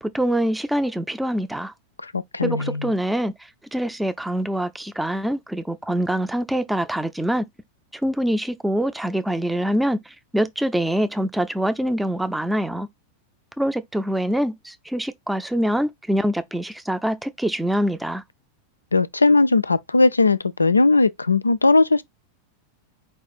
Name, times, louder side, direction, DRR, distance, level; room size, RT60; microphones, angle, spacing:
voice 1, 0.0-1.7 2.4-3.3 3.7-7.5 7.9-12.9 13.6-18.2, equal, 5° right, 0.5 m, -24 dB
voice 2, 2.0-2.9 18.9-22.0, left 3 dB, 80° left, 0.3 m, -18 dB
4.7 x 2.4 x 4.2 m
figure-of-eight pair, 90°, 0 cm